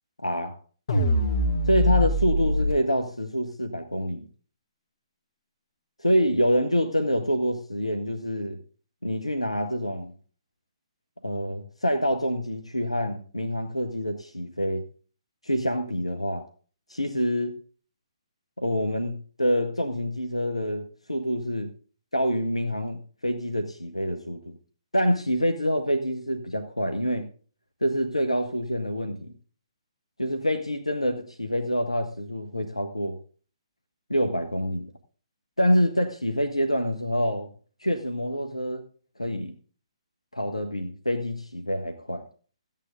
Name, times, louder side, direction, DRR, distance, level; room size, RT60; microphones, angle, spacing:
voice 1, 0.2-0.5 1.7-4.3 6.0-8.6 9.0-10.1 11.2-14.8 15.4-16.5 16.9-17.5 18.6-21.7 22.1-24.6 24.9-27.2 27.8-29.3 30.2-33.2 34.1-34.9 35.6-37.5 37.8-38.8 39.2-39.5 40.3-42.2, equal, 90° left, 1.3 m, -26 dB
sound 1, 0.9-2.7, left 1 dB, 55° left, 2.9 m, -23 dB
14.5 x 9.1 x 3.8 m
figure-of-eight pair, 130°, 3 cm